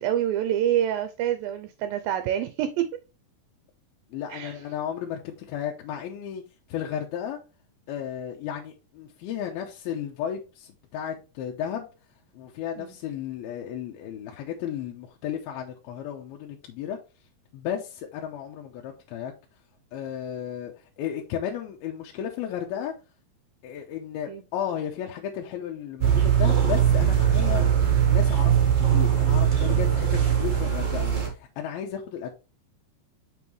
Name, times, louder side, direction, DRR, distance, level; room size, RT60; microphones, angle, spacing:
voice 1, 0.0-2.9 4.3-4.6 12.8-12.9 24.3-24.4 30.4-30.5, right 11 dB, 80° right, 2.1 m, -27 dB
voice 2, 4.1-6.4 6.7-7.4 7.9-11.9 12.3-17.0 17.5-19.3 19.9-22.9 23.6-27.6 28.0-32.3, left 9 dB, 80° left, 2.6 m, -34 dB
sound 1, 26.0-31.3, right 9 dB, 60° right, 0.8 m, -21 dB
6.9 x 5.5 x 3.1 m
omnidirectional pair, 4.6 m